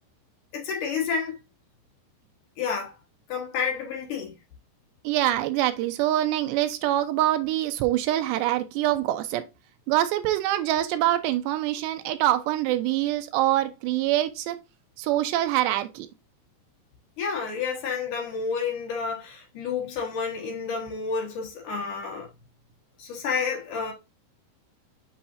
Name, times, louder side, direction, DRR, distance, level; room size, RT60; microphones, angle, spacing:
voice 1, 0.5-1.4 2.6-2.9 3.3-4.3 17.2-22.3 23.0-23.9, left 5 dB, 65° left, 2.2 m, -30 dB
voice 2, 5.0-9.4 9.9-14.6 15.0-16.1, right 14 dB, 80° right, 2.6 m, -25 dB
7.0 x 5.7 x 2.6 m
omnidirectional pair, 5.4 m